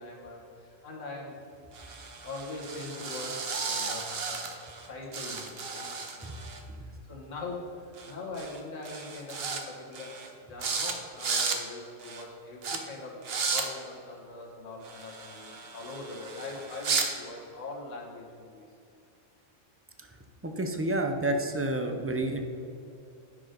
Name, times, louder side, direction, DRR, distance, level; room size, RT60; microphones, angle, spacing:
voice 1, 0.0-1.3 2.2-5.9 6.2-6.5 7.1-18.7, left 2 dB, 75° left, -1 dB, 1.8 m, -42 dB
sound 1, 1.7-4.9 5.1-6.6 8.0-8.1 8.4-8.6 8.9-9.6 9.9-10.3 10.6-10.9 11.2-11.6 12.0-12.2 12.6-12.8 13.2-13.7 14.8-17.1, right 5 dB, 55° right, 1.1 m, -34 dB
voice 2, 20.4-22.4, right 1 dB, 20° right, 5 dB, 0.3 m, -30 dB
9.6 x 6.0 x 5.1 m, 2.6 s
omnidirectional pair, 1.3 m